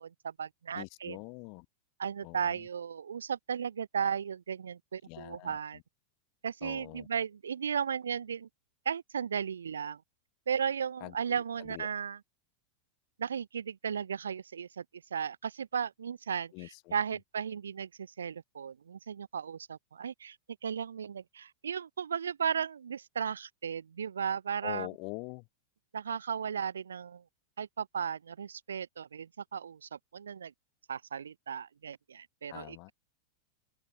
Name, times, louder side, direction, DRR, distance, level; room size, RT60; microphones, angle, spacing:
voice 1, 0.0-1.2 2.0-5.8 6.4-8.5 8.9-10.0 10.5-12.2 13.2-14.8 15.1-20.4 20.6-24.9 25.9-27.2 27.6-30.5 30.9-32.9, right 7 dB, 70° right, 0.6 m, -35 dB
voice 2, 0.7-1.7 2.2-2.7 5.0-5.8 6.6-7.1 11.0-11.9 16.5-17.0 24.6-25.5 32.5-32.9, left 35 dB, 45° left, 1.1 m, -44 dB
figure-of-eight pair, 90°, 0 cm